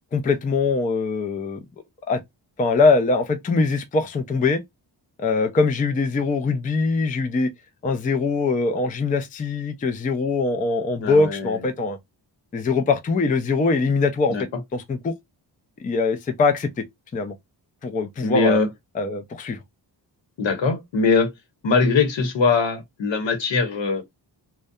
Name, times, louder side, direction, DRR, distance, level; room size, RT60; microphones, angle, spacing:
voice 1, 0.1-1.6 2.1-2.2 2.6-4.6 5.2-7.5 7.8-12.0 12.5-14.4 14.7-15.1 15.8-16.8 17.1-17.4 17.8-18.6 18.9-19.6, left 3 dB, 20° left, 0.3 m, -22 dB
voice 2, 11.0-11.5 14.3-14.4 18.2-18.7 20.4-21.3 21.6-24.0, left 4 dB, 80° left, 0.9 m, -21 dB
2.6 x 2.2 x 2.2 m
wide cardioid pair, 115°, 44 cm